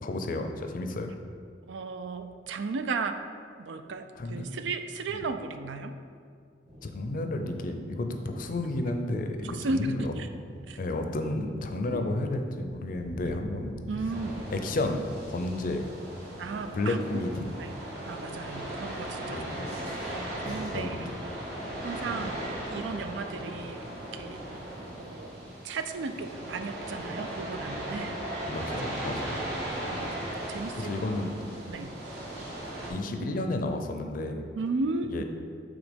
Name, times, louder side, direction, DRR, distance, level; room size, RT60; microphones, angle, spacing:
voice 1, 0.0-1.1 4.2-4.5 6.8-10.2 10.8-13.7 14.5-15.9 16.7-17.5 19.3-19.6 20.4-21.0 28.5-29.4 30.7-31.3 32.9-34.4 35.1-35.2, left 2 dB, 50° left, 5 dB, 0.5 m, -32 dB
voice 2, 1.7-3.2 3.6-5.9 9.4-10.3 10.7-10.8 11.9-12.0 13.9-14.4 16.4-17.2 17.6-17.7 18.0-19.8 20.0-21.1 21.8-23.8 24.1-24.4 25.0-25.3 25.6-28.2 28.6-28.7 29.9-30.1 30.5-30.9 31.7-31.9 34.6-35.2, right 3 dB, 90° right, 8 dB, 0.4 m, -35 dB
sound 1, 6.6-17.1, equal, 40° right, 1.4 m, -46 dB
sound 2, 14.1-32.9, right 1 dB, 65° right, 1.4 m, -37 dB
5.0 x 3.7 x 5.2 m, 2.2 s
head